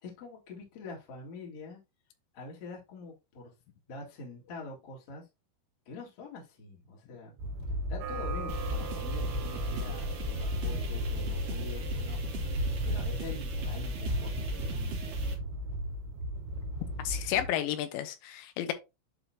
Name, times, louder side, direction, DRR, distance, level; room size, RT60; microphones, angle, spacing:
voice 1, 0.0-1.8 2.3-3.5 3.9-5.3 5.9-7.4 7.7-12.6 12.8-15.2, left 3 dB, 40° left, 2.6 m, -45 dB
sound 1, 7.4-17.5, equal, 70° right, 4.1 m, -34 dB
sound 2, 8.0-14.0, right 9 dB, 90° right, 3.5 m, -45 dB
sound 3, 8.5-15.4, equal, 50° right, 1.9 m, -40 dB
voice 2, 17.0-18.7, left 12 dB, 75° left, 3.0 m, -32 dB
11.0 x 3.7 x 2.9 m
omnidirectional pair, 5.6 m